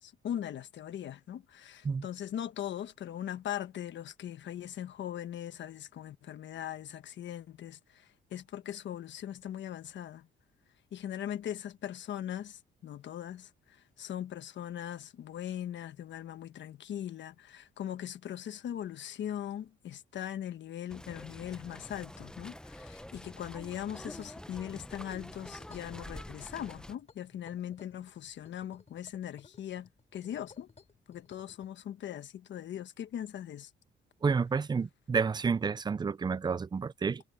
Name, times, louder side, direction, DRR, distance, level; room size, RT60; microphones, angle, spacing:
voice 1, 0.0-10.3 10.9-30.7 31.1-33.7, left 10 dB, 65° left, 1.4 m, -40 dB
sound 1, 20.9-26.9, left 1 dB, 5° left, 0.9 m, -47 dB
sound 2, 25.6-31.7, left 5 dB, 35° left, 4.2 m, -58 dB
voice 2, 34.2-37.2, right 5 dB, 20° right, 0.4 m, -30 dB
cardioid pair, 90°, 20 cm